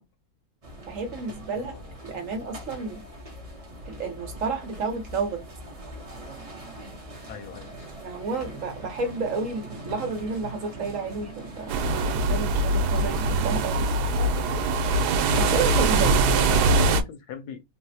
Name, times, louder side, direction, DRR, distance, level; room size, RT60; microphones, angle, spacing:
sound 1, 0.6-16.0, right 1 dB, 30° right, 0.7 m, -42 dB
voice 1, 0.9-1.7 2.0-3.0 3.9-5.4 8.0-11.7 12.1-13.9 15.4-16.5, right 4 dB, 60° right, 1.1 m, -31 dB
voice 2, 1.5-2.0 7.3-7.9 16.5-17.6, left 6 dB, 85° left, 1.3 m, -40 dB
sound 2, 11.7-17.0, right 2 dB, 85° right, 1.1 m, -22 dB
3.9 x 2.0 x 2.7 m
omnidirectional pair, 1.6 m